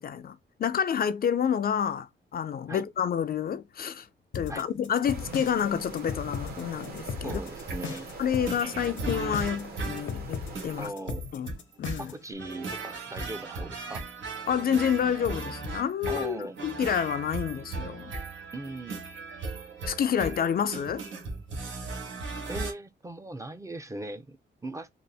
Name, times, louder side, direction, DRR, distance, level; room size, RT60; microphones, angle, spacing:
voice 1, 0.0-4.1 4.3-7.4 8.2-10.9 11.3-11.5 11.8-12.1 14.5-18.1 19.9-21.1, left 8 dB, 50° left, 0.4 m, -29 dB
sound 1, 4.3-12.3, left 6 dB, 85° left, 0.9 m, -37 dB
sound 2, 5.0-10.9, right 3 dB, 55° right, 1.6 m, -43 dB
sound 3, 7.0-22.7, right 3 dB, 80° right, 1.4 m, -37 dB
voice 2, 7.2-8.1 10.8-11.3 12.0-14.1 16.1-16.6 18.5-19.0 22.5-24.9, right 2 dB, 15° right, 0.6 m, -39 dB
4.0 x 2.5 x 3.3 m
cardioid pair, 115°, 20 cm